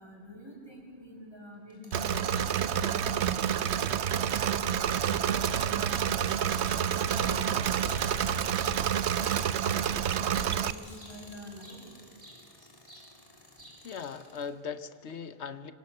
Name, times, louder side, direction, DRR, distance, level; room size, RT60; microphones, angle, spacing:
voice 1, 0.0-4.0 4.6-6.2 6.8-8.8 9.6-10.1 10.4-11.8, left 1 dB, 25° right, -1 dB, 6.7 m, -47 dB
Tools, 1.7-9.9 10.3-14.6, left 1 dB, 30° left, 3.3 m, -53 dB
Engine / Mechanisms, 1.9-10.7, right 9 dB, 80° right, 1.1 m, -28 dB
sound 1, 8.6-11.8 12.2-13.1 13.4-14.0, right 1 dB, 60° right, 5.4 m, -53 dB
voice 2, 13.8-15.7, left 6 dB, 85° left, 12 dB, 1.3 m, -39 dB
26.0 x 25.5 x 6.7 m, 2.2 s
omnidirectional pair, 1.1 m